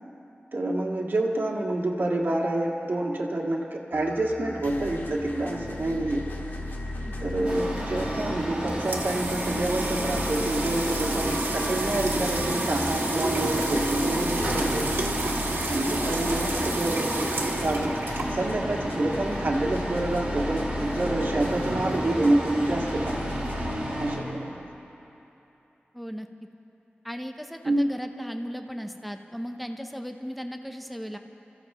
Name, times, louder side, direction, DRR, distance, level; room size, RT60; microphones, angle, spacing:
voice 1, 0.5-6.3 7.2-15.1 15.7-17.3 17.6-18.0 18.3-23.4 24.0-24.6 27.6-27.8, right 1 dB, 65° right, -3 dB, 2.0 m, -27 dB
sound 1, 3.9-23.7, left 1 dB, 65° left, 1.8 m, -35 dB
voice 2, 7.0-7.6 25.9-26.3 27.0-31.2, equal, ahead, 5 dB, 0.8 m, -37 dB
sound 2, 7.4-24.2, right 1 dB, 30° right, 4.2 m, -32 dB
sound 3, 8.4-18.7, right 2 dB, 80° right, 1.6 m, -31 dB
28.5 x 15.0 x 3.1 m, 3.0 s
wide cardioid pair, 80°, 4 cm